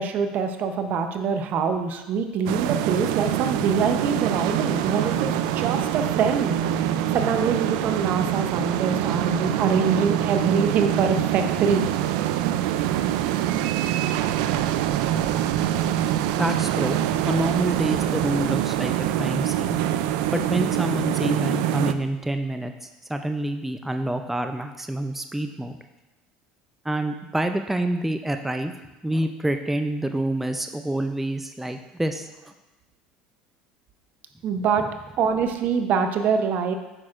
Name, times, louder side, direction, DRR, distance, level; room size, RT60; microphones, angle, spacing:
voice 1, 0.0-6.5 7.1-11.9 34.4-36.7, right 5 dB, 55° right, 7 dB, 0.7 m, -24 dB
sound 1, 2.5-21.9, right 11 dB, 75° right, 0.3 m, -24 dB
voice 2, 16.4-19.8 20.3-25.7 26.9-28.7 29.0-32.3, right 1 dB, 5° right, 6 dB, 0.5 m, -27 dB
8.9 x 6.1 x 2.5 m, 1.0 s
hypercardioid pair, 80°, 4 cm